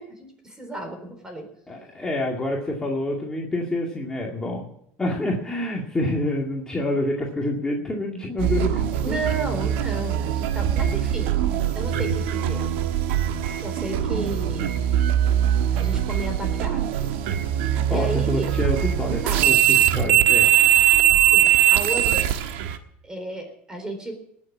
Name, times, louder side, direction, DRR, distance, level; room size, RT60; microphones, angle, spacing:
voice 1, 0.0-1.5 9.0-11.4 11.7-12.8 13.6-14.8 15.7-17.0 17.9-18.7 19.2-19.6 21.3-22.3 23.0-24.2, right 1 dB, 10° right, 5 dB, 4.2 m, -33 dB
voice 2, 1.7-4.7 5.0-9.2 17.9-20.5, left 1 dB, 10° left, -1 dB, 2.1 m, -27 dB
sound 1, 8.4-22.8, right 11 dB, 85° right, 1.4 m, -21 dB
19.5 x 7.3 x 8.5 m, 0.72 s
supercardioid pair, 130°, 6 cm